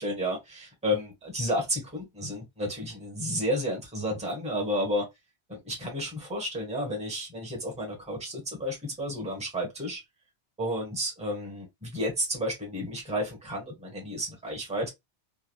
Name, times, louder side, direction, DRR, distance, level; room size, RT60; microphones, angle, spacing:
voice 1, 0.0-5.1 5.5-10.0 10.6-14.9, equal, 5° right, 1.0 m, -31 dB
3.4 x 2.1 x 2.2 m
omnidirectional pair, 1.1 m